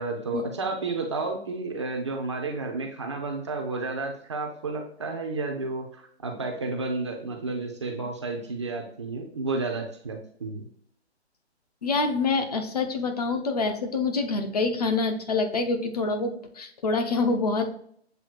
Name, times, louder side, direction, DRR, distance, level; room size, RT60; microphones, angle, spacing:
voice 1, 0.0-10.7, right 3 dB, 25° right, 2 dB, 0.5 m, -31 dB
voice 2, 11.8-17.7, left 3 dB, 35° left, 5 dB, 0.7 m, -26 dB
7.6 x 2.7 x 2.4 m, 0.63 s
figure-of-eight pair, 140°, 34 cm